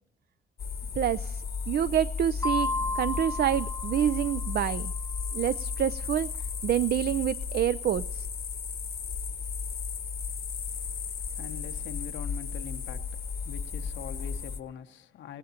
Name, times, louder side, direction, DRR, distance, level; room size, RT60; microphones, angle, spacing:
sound 1, 0.6-14.6, left 5 dB, 55° left, 1.0 m, -34 dB
voice 1, 1.0-2.7 3.0-4.9 5.3-6.3 6.6-8.3, right 10 dB, 60° right, 0.4 m, -27 dB
sound 2, 2.4-4.9, left 2 dB, 15° left, 0.6 m, -33 dB
voice 2, 10.7-15.4, left 8 dB, 85° left, 0.9 m, -44 dB
18.0 x 17.5 x 2.9 m
cardioid pair, 70°, 19 cm